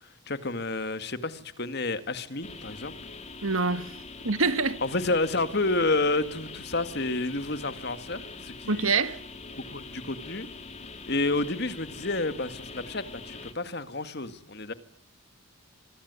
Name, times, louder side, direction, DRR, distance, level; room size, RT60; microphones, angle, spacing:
voice 1, 0.0-2.9 4.8-8.9 9.7-10.5 11.1-14.7, left 2 dB, 50° left, 2.1 m, -30 dB
sound 1, 2.4-13.5, left 3 dB, 30° left, 3.2 m, -43 dB
voice 2, 3.4-3.9 4.2-4.8 8.7-9.2, right 4 dB, 80° right, 1.7 m, -25 dB
26.5 x 22.5 x 9.7 m
head